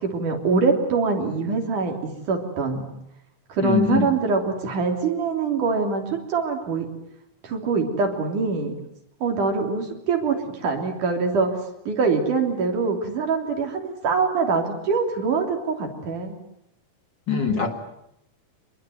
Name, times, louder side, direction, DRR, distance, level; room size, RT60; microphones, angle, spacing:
voice 1, 0.0-2.8 3.5-6.9 7.4-8.7 9.2-11.5 11.9-16.4, right 4 dB, 80° right, 3 dB, 4.9 m, -24 dB
voice 2, 3.6-4.1 17.3-17.7, left 6 dB, 40° left, 4 dB, 2.4 m, -22 dB
25.0 x 21.0 x 9.3 m, 0.79 s
omnidirectional pair, 3.5 m